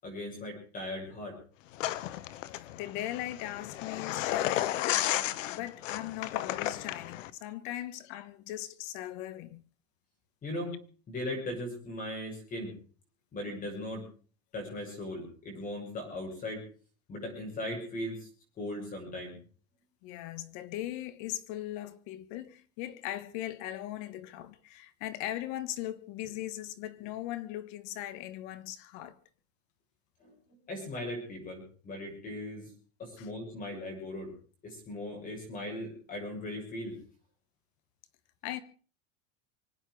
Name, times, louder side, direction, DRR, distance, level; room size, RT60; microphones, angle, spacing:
voice 1, 0.0-1.4 10.4-10.8 11.1-12.7 13.3-14.0 14.5-16.6 17.1-18.3 18.6-19.4 30.2-30.4 30.7-32.7 33.0-34.3 34.6-37.0, left 1 dB, 20° left, 6.8 m, -38 dB
sound 1, 1.8-7.3, left 14 dB, 75° left, 1.2 m, -33 dB
voice 2, 2.7-9.6 20.0-29.2 33.2-33.3 38.4-38.6, left 14 dB, 45° left, 1.3 m, -39 dB
24.5 x 9.0 x 6.2 m
supercardioid pair, 160°, 38 cm